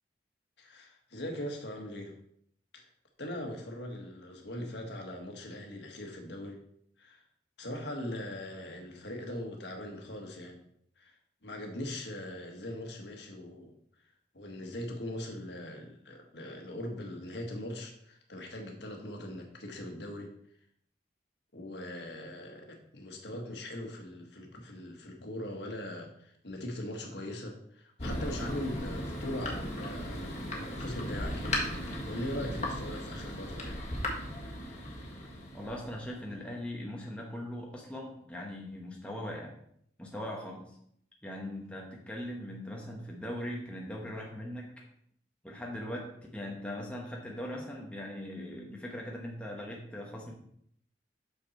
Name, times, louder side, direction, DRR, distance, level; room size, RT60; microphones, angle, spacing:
voice 1, 0.6-2.1 2.7-2.9 3.2-6.6 7.0-7.2 7.6-10.6 11.0-13.7 14.3-20.3 21.5-33.8, left 1 dB, 70° left, 2 dB, 1.5 m, -41 dB
Thunder, 28.0-36.3, left 1 dB, 35° left, 1.5 m, -37 dB
voice 2, 35.5-39.5 40.0-40.8 41.2-44.7 45.4-50.3, left 1 dB, 5° left, -2 dB, 1.0 m, -40 dB
6.5 x 5.9 x 4.2 m, 0.69 s
head